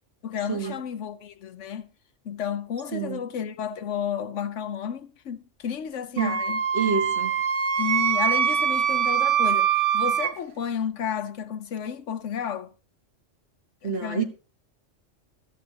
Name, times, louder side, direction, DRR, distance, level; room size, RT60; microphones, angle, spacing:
voice 1, 0.2-1.9 2.2-6.6 7.8-12.7 13.8-14.2, left 8 dB, 80° left, 1.2 m, -32 dB
Wind instrument woodwind instrument, 6.2-10.3, right 8 dB, 75° right, 1.2 m, -23 dB
voice 2, 6.7-7.4 13.8-14.2, right 5 dB, 55° right, 1.6 m, -27 dB
13.5 x 13.0 x 2.8 m
omnidirectional pair, 1.2 m